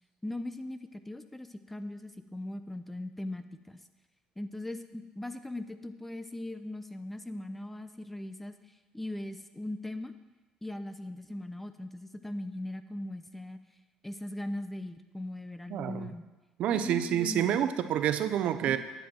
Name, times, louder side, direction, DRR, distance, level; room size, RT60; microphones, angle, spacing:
voice 1, 0.2-3.8 4.4-8.6 8.9-10.1 10.6-13.6 14.0-16.3 16.7-17.7 18.7-18.8, left 1 dB, 10° left, 10 dB, 0.6 m, -39 dB
voice 2, 15.7-16.1 16.6-18.8, right 10 dB, 65° right, 10 dB, 0.6 m, -28 dB
10.5 x 7.9 x 4.3 m, 1.1 s
cardioid pair, 100°, 2 cm